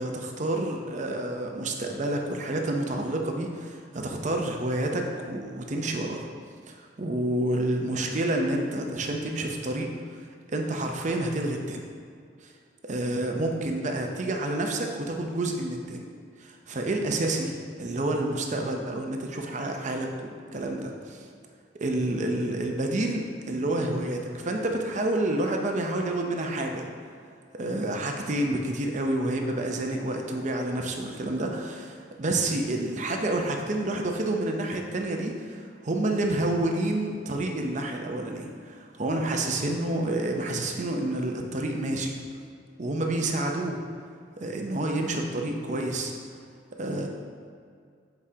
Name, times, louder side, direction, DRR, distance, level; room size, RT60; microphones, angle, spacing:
voice 1, 0.0-6.2 6.7-10.2 10.5-11.9 12.4-12.5 12.8-16.0 16.4-17.5 17.8-21.3 21.8-26.8 27.6-42.2 42.8-43.8 44.4-46.1 46.8-47.1, right 1 dB, 45° right, 2 dB, 0.6 m, -29 dB
7.8 x 4.8 x 2.8 m, 2.2 s
head